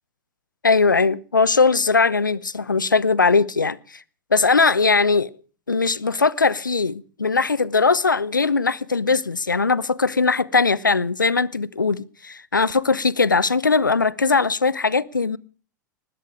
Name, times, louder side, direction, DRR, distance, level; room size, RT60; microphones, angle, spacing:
voice 1, 0.6-3.8 4.3-5.3 5.7-15.4, left 4 dB, 85° left, 0.8 m, -20 dB
19.5 x 13.0 x 4.8 m
figure-of-eight pair, 95°, 10 cm